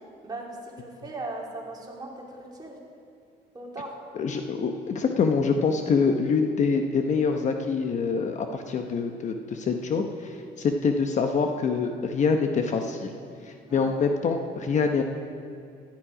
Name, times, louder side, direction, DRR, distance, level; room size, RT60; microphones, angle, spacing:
voice 1, 0.2-2.2 2.6-2.8 3.5-3.9 13.6-14.0, right 2 dB, 25° right, -2 dB, 2.6 m, -38 dB
voice 2, 4.1-13.1 13.5-15.0, left 5 dB, 45° left, 5 dB, 0.8 m, -25 dB
15.0 x 10.5 x 4.9 m, 2.4 s
cardioid pair, 110°, 17 cm